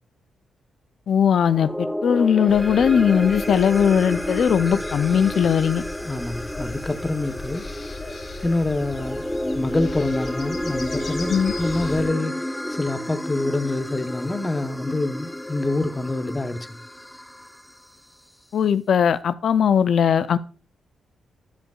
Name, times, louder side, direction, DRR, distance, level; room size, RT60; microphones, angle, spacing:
voice 1, 1.1-5.8 11.3-11.5 18.5-20.4, left 8 dB, 65° left, 0.5 m, -19 dB
sound 1, 1.4-17.8, equal, 5° left, 0.6 m, -31 dB
sound 2, 2.5-12.1, left 3 dB, 50° left, 3.4 m, -38 dB
voice 2, 6.0-7.7 8.4-9.2 9.5-16.8, left 2 dB, 20° left, 1.0 m, -26 dB
13.5 x 5.1 x 2.4 m
supercardioid pair, 60°, 0 cm